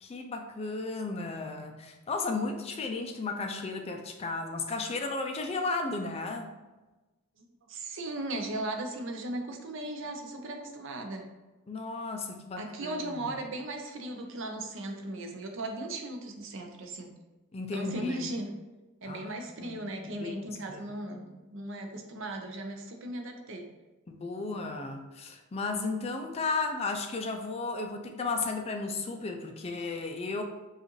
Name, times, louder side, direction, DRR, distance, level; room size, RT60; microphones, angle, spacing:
voice 1, 0.0-6.5 11.7-13.3 17.5-18.3 19.0-19.8 20.1-20.4 20.7-20.8 24.1-30.4, left 3 dB, 30° left, 4 dB, 0.3 m, -34 dB
voice 2, 7.4-11.3 12.6-17.1 17.7-18.5 19.0-23.7, right 1 dB, 60° right, 4 dB, 0.6 m, -37 dB
4.9 x 2.4 x 3.1 m, 1.1 s
head